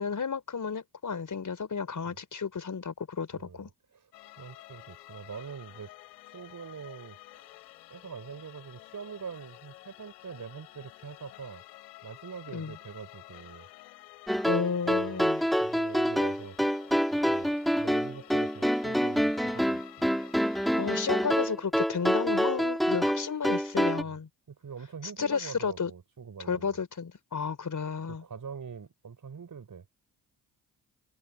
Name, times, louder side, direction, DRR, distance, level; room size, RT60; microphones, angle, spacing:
voice 1, 0.0-3.7 12.5-12.7 14.5-15.4 20.7-24.3 25.2-25.9 26.5-28.2, left 6 dB, 40° left, 5.4 m, -32 dB
voice 2, 3.3-4.1 4.4-5.9 6.2-7.5 7.9-11.6 12.0-13.7 14.9-15.3 15.6-16.6 17.1-20.1 24.0-24.2 24.5-26.8 28.1-30.0, right 6 dB, 40° right, 5.6 m, -44 dB
sound 1, 4.1-21.1, left 19 dB, 85° left, 4.9 m, -51 dB
sound 2, 14.3-24.0, equal, ahead, 2.4 m, -27 dB
hypercardioid pair, 50°, 49 cm